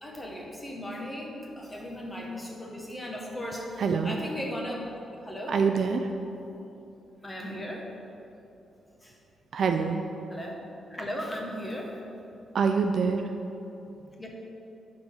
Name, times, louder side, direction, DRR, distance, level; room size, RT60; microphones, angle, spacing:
voice 1, 0.0-5.0 5.2-5.6 7.2-7.9 9.0-9.2 10.3-10.6 10.9-11.9 14.2-14.3, equal, 10° left, -1 dB, 1.0 m, -37 dB
voice 2, 3.8-4.1 5.5-6.1 9.5-10.0 12.5-13.2, right 5 dB, 50° right, 6 dB, 0.4 m, -25 dB
11.5 x 4.0 x 5.3 m, 2.9 s
wide cardioid pair, 165°, 0 cm